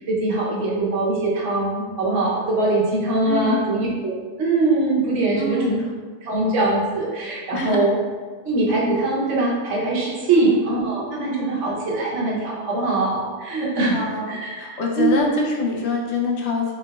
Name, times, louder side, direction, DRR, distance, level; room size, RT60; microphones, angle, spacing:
voice 1, 0.1-4.1 4.4-5.8 6.2-7.9 8.4-14.0 14.2-15.2, right 2 dB, 85° right, -4 dB, 1.2 m, -22 dB
voice 2, 3.2-3.7 5.3-5.9 7.5-7.9 10.3-10.6 13.8-16.7, left 3 dB, 70° left, -1 dB, 0.8 m, -25 dB
3.7 x 3.3 x 2.3 m, 1.5 s
omnidirectional pair, 1.2 m